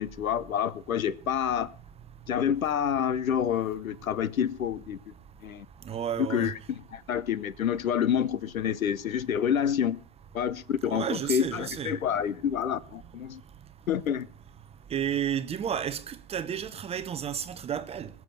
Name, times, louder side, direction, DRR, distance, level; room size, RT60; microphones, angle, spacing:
voice 1, 0.0-1.7 2.3-5.0 5.4-5.7 6.2-6.5 6.9-10.0 10.3-13.4 13.9-14.3, left 8 dB, 80° left, 1.0 m, -28 dB
voice 2, 5.9-6.5 10.9-11.9 14.9-18.1, right 9 dB, 15° right, 0.7 m, -32 dB
20.5 x 7.2 x 5.8 m
hypercardioid pair, 110°, 41 cm